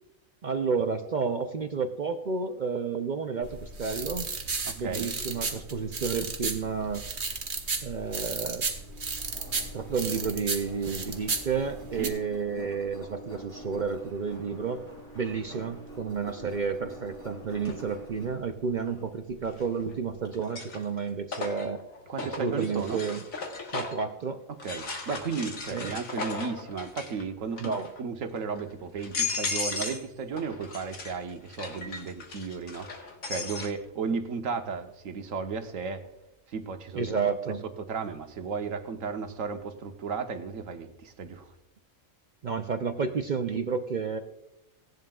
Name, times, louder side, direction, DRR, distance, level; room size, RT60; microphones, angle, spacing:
voice 1, 0.4-4.3 4.8-7.1 7.8-8.6 9.7-14.8 15.1-21.8 22.2-23.2 23.7-24.4 25.7-26.0 27.6-27.9 36.9-37.6 42.4-44.2, right 5 dB, 55° right, 7 dB, 0.5 m, -31 dB
sound 1, 3.4-12.1, right 4 dB, 40° right, 1.1 m, -34 dB
voice 2, 4.6-5.1 12.0-12.1 22.1-23.0 24.5-32.9 33.2-36.1 36.5-37.1 37.8-41.5, right 5 dB, 75° right, 6 dB, 1.3 m, -34 dB
Engine, 8.7-20.3, equal, 60° left, 4.6 m, -46 dB
sound 2, 17.7-17.8 19.5-19.9 20.3-24.1 24.6-27.2 27.5-28.0 28.6-28.7 29.0-30.1 30.4-33.7, left 4 dB, 85° left, 1.9 m, -36 dB
17.5 x 11.0 x 2.3 m, 0.91 s
omnidirectional pair, 1.4 m